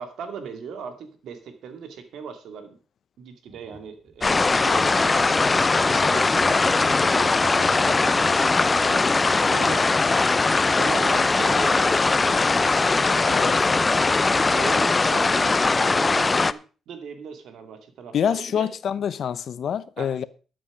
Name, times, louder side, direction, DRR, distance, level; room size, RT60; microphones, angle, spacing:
voice 1, 0.0-2.8 3.2-5.3 5.9-10.5 10.8-12.0 12.6-13.5 14.5-16.6 16.9-18.7 20.0-20.2, right 6 dB, 75° right, 2.4 m, -38 dB
sound 1, 3.5-4.2 4.8-14.9, right 2 dB, 35° right, 4.6 m, -48 dB
sound 2, 4.2-16.5, left 3 dB, 25° left, 0.5 m, -20 dB
voice 2, 18.1-20.3, left 8 dB, 60° left, 0.7 m, -26 dB
13.0 x 7.8 x 5.1 m
cardioid pair, 90°, 0 cm